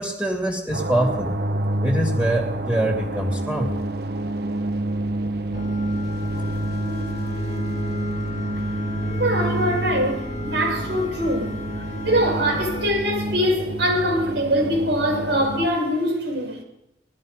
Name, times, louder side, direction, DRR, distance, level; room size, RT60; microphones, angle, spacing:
voice 1, 0.0-1.3 1.8-3.8, right 1 dB, 5° right, 2.6 m, -24 dB
sound 1, 0.7-15.7, right 1 dB, 60° right, 0.8 m, -28 dB
sound 2, 5.5-12.9, left 1 dB, 40° left, 1.8 m, -33 dB
voice 2, 9.2-11.5 12.0-16.6, equal, 90° right, 6.1 m, -23 dB
19.5 x 13.5 x 5.2 m
head